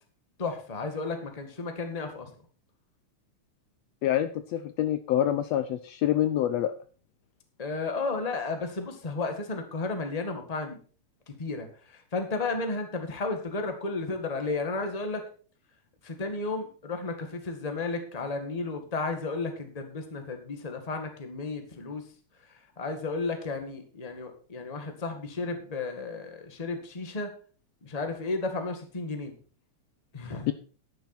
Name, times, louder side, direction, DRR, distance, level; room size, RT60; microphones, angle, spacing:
voice 1, 0.4-2.3 7.6-10.8 11.3-11.7 12.1-15.2 16.0-22.0 22.8-27.3 27.8-29.3 30.1-30.5, left 3 dB, 15° left, 5 dB, 1.4 m, -33 dB
voice 2, 4.0-6.7 30.5-30.6, left 11 dB, 75° left, 11 dB, 1.7 m, -26 dB
10.5 x 10.5 x 4.4 m, 0.40 s
omnidirectional pair, 3.3 m